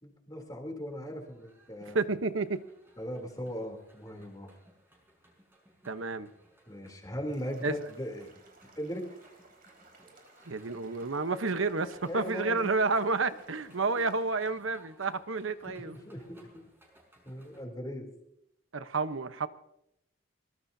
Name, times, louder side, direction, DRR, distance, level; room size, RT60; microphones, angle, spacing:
voice 1, 0.0-2.0 3.0-4.5 6.7-8.3 8.8-9.1 12.0-12.8 13.9-14.1 15.7-16.6 17.2-18.1, equal, 20° left, 2 dB, 3.2 m, -39 dB
sound 1, 0.9-17.7, right 1 dB, 10° right, 5.5 m, -63 dB
voice 2, 1.8-2.6 5.9-6.3 7.6-7.7 10.5-16.0 18.7-19.5, right 3 dB, 80° right, 10 dB, 1.0 m, -30 dB
sound 2, 7.3-14.5, right 2 dB, 45° right, 4.8 m, -59 dB
23.5 x 20.5 x 2.8 m, 0.80 s
head